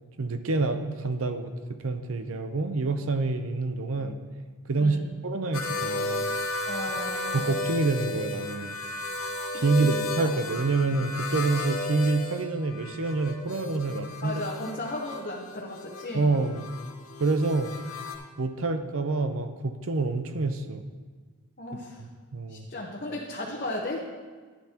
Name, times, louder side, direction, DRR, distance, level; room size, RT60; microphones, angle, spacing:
voice 1, 0.2-4.2 4.7-5.0 5.2-6.3 7.3-8.8 9.5-14.4 16.1-16.7 17.2-17.7 18.4-20.8 22.0-22.7, right 3 dB, 65° right, 8 dB, 0.7 m, -27 dB
sound 1, 5.5-18.2, left 2 dB, 70° left, 1.0 m, -34 dB
voice 2, 6.6-7.5 9.5-10.3 14.2-16.4 21.6-22.0 22.5-24.0, left 1 dB, 40° left, -3 dB, 0.9 m, -35 dB
11.5 x 10.5 x 2.9 m, 1.5 s
head